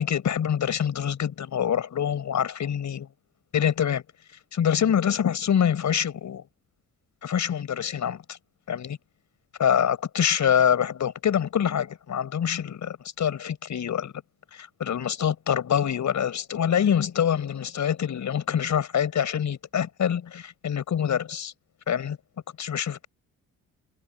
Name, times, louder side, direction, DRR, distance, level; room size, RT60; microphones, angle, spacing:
voice 1, 0.0-3.1 3.5-4.0 4.5-6.4 7.2-8.4 8.7-9.0 9.6-14.1 14.5-21.5 21.9-22.2 22.6-23.1, left 8 dB, 60° left, 6.2 m, -25 dB
supercardioid pair, 60°, 33 cm